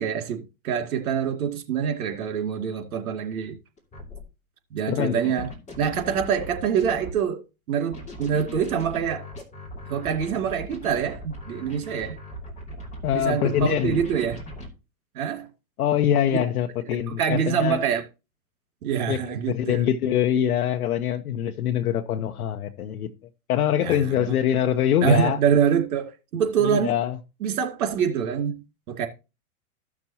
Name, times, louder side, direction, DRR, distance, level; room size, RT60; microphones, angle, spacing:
voice 1, 0.0-3.6 4.7-5.5 5.8-9.3 9.9-12.2 13.1-14.4 15.1-15.5 16.3-16.5 17.1-18.1 18.8-19.8 23.8-24.3 25.0-27.0 27.4-28.6 28.9-29.1, right 7 dB, 70° right, 2.5 m, -25 dB
sound 1, 3.8-4.2 5.4-7.2 7.9-14.7, equal, 15° left, 2.7 m, -39 dB
voice 2, 4.9-5.4 13.0-14.0 15.8-17.8 19.1-19.2 19.5-23.1 23.5-25.4 26.6-27.2, left 10 dB, 75° left, 1.0 m, -24 dB
15.5 x 6.1 x 2.9 m
hypercardioid pair, 145°, 44 cm